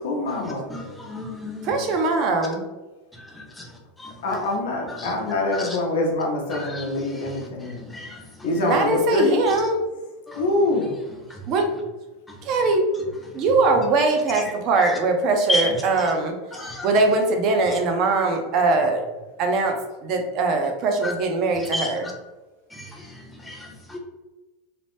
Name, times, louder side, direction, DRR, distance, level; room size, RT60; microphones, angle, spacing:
voice 1, 0.0-0.7 4.2-7.8 8.4-9.4 10.3-10.9, left 2 dB, 85° left, 0 dB, 0.7 m, -24 dB
voice 2, 1.1-1.6 5.0-5.1 6.5-6.9 7.9-8.1 14.8-14.9 15.5-15.7 16.5-16.9 21.0-21.1 21.7-21.9 23.5-23.6 23.9-24.0, left 2 dB, 5° left, 0 dB, 0.5 m, -28 dB
voice 3, 1.6-2.6 8.6-9.8 11.5-11.7 12.4-12.8 13.3-16.3 16.8-19.0 19.4-19.8 20.0-22.1, right 3 dB, 45° right, 4 dB, 0.5 m, -21 dB
2.9 x 2.0 x 3.0 m, 1.1 s
supercardioid pair, 140°, 0 cm